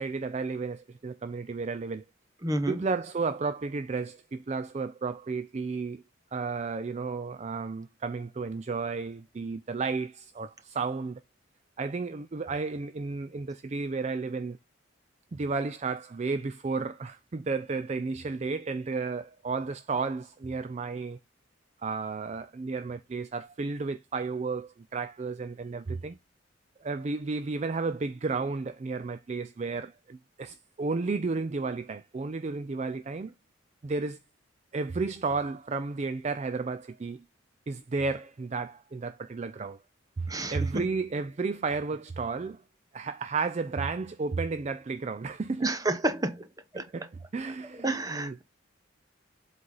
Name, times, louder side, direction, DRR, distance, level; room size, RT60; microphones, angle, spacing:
voice 1, 0.0-2.0 2.7-6.0 6.3-11.2 11.8-14.6 15.3-21.2 21.8-26.2 26.8-33.3 33.8-34.2 34.7-37.2 37.7-39.8 40.2-42.6 42.9-45.8 46.7-48.4, right 4 dB, 35° right, 0.4 m, -32 dB
voice 2, 2.4-2.8 40.3-40.8 45.6-46.5 46.7-47.1 47.8-48.4, right 1 dB, 20° right, 0.9 m, -30 dB
7.7 x 4.0 x 4.0 m
head